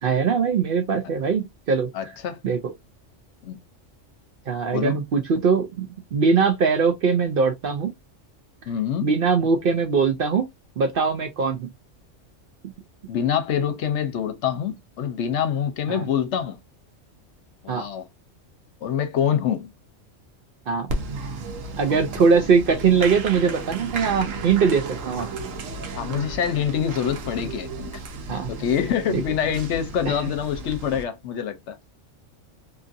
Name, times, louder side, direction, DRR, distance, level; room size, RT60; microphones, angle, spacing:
voice 1, 0.0-2.1 2.4-2.7 4.5-7.9 9.0-10.5 10.8-11.7 15.9-16.0 17.7-17.9 20.7-20.9 21.8-25.3 28.3-28.5 29.1-29.2 30.1-30.2, right 5 dB, 60° right, 0.6 m, -21 dB
voice 2, 1.9-2.4 3.4-3.6 4.7-5.0 8.7-9.1 13.1-16.6 17.6-18.1 18.8-19.7 22.2-22.3 25.9-27.9 28.5-31.8, left 8 dB, 70° left, 0.9 m, -25 dB
Applause, 20.9-31.0, right 3 dB, 90° right, 1.1 m, -34 dB
2.8 x 2.4 x 2.5 m
omnidirectional pair, 1.3 m